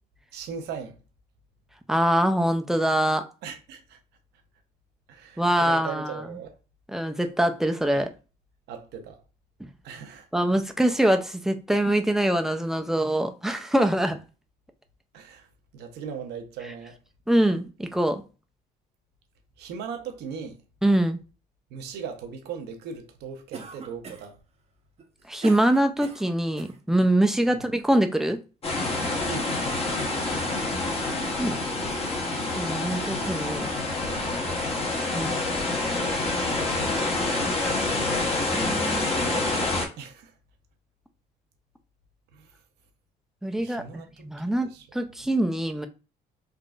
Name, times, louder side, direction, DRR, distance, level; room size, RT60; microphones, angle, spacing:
voice 1, 0.3-1.0 3.4-4.0 5.1-6.5 7.9-8.0 8.7-9.2 9.8-10.3 15.1-15.5 15.7-17.0 19.6-20.6 21.7-24.4 27.5-27.6 29.3-30.3 33.0-33.2 35.1-35.8 36.7-37.1 38.9-39.6 40.0-40.3 42.3-42.5 43.6-44.3 44.6-44.8 45.2-45.3, right 6 dB, 75° right, 0.8 m, -39 dB
voice 2, 1.9-3.3 5.4-6.1 6.9-8.1 10.3-14.2 17.3-18.2 20.8-21.2 25.3-28.4 31.4-31.6 32.6-33.7 35.1-35.4 38.5-39.1 43.4-45.9, right 1 dB, ahead, 0.4 m, -24 dB
Cough, 23.5-24.4 25.0-26.8, right 4 dB, 40° right, 0.7 m, -40 dB
sound 1, 28.6-39.9, left 2 dB, 35° left, 0.9 m, -27 dB
3.6 x 2.5 x 2.3 m
cardioid pair, 110°, 17 cm